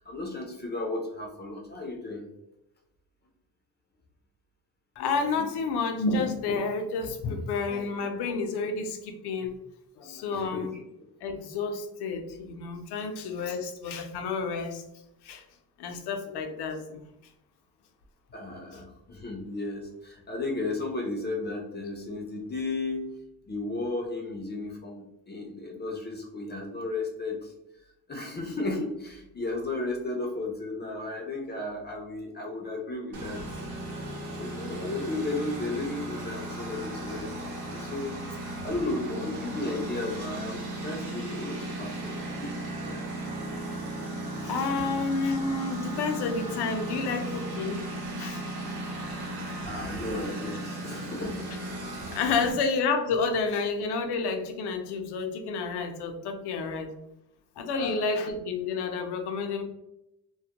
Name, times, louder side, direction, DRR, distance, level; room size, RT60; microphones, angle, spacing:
voice 1, 0.0-2.3 10.3-10.8 18.3-23.1 23.5-27.5 28.1-33.6 34.1-43.6 44.7-44.8 49.7-51.5 57.7-58.1, left 2 dB, 30° left, 1 dB, 0.4 m, -34 dB
voice 2, 5.0-9.5 10.0-10.7 11.2-14.8 15.2-15.4 15.8-17.0 44.4-47.8 48.2-48.4 49.5-49.6 52.1-56.9 57.6-59.6, left 4 dB, 85° left, 5 dB, 0.5 m, -30 dB
Engine, 33.1-52.5, right 2 dB, 75° right, 0.8 m, -36 dB
2.2 x 2.1 x 2.7 m, 0.86 s
cardioid pair, 110°, 39 cm